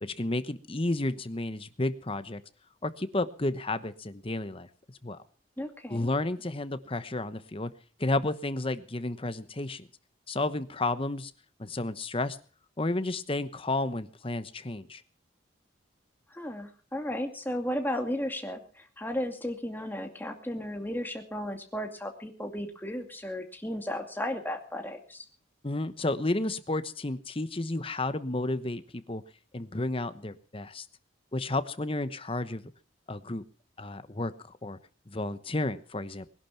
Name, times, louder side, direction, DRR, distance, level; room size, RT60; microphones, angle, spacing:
voice 1, 0.0-2.4 2.8-4.7 5.0-5.2 5.9-7.7 8.0-9.9 10.3-11.3 11.6-12.4 12.8-15.0 25.6-29.2 29.5-30.8 31.3-32.7 33.1-33.4 33.8-34.3 34.6-34.8 35.1-36.3, left 2 dB, 30° left, 12 dB, 1.0 m, -32 dB
voice 2, 5.6-6.1 16.3-25.2, left 1 dB, 10° left, 4 dB, 2.3 m, -34 dB
21.0 x 11.5 x 5.8 m, 0.42 s
head